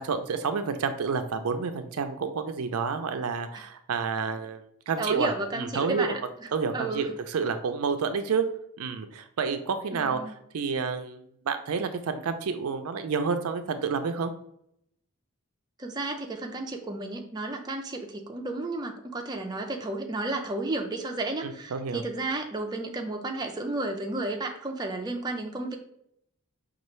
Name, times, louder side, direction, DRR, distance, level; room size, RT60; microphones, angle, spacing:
voice 1, 0.0-6.1 6.5-8.5 8.8-10.2 10.5-14.3 21.4-22.0, right 5 dB, 85° right, 8 dB, 0.5 m, -29 dB
voice 2, 5.0-6.5 6.7-7.2 9.9-10.3 15.8-25.8, right 2 dB, 20° right, 2 dB, 0.4 m, -32 dB
5.4 x 2.4 x 3.1 m, 0.71 s
head